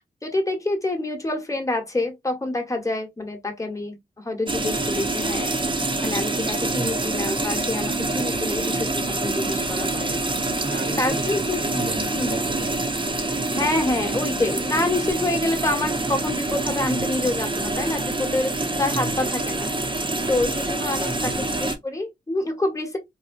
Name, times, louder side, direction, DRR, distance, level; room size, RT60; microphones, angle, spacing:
voice 1, 0.2-5.6 6.0-10.2 11.0-11.6 12.1-12.4 13.5-19.7 20.3-23.0, left 2 dB, 15° left, 1.2 m, -27 dB
sound 1, 4.5-21.7, right 2 dB, 30° right, 0.8 m, -26 dB
voice 2, 6.6-6.9 8.1-8.5 10.6-12.8 16.8-17.0 18.8-19.2 21.0-21.4, right 2 dB, 70° right, 1.3 m, -34 dB
4.1 x 2.2 x 2.4 m
cardioid pair, 55°, 18 cm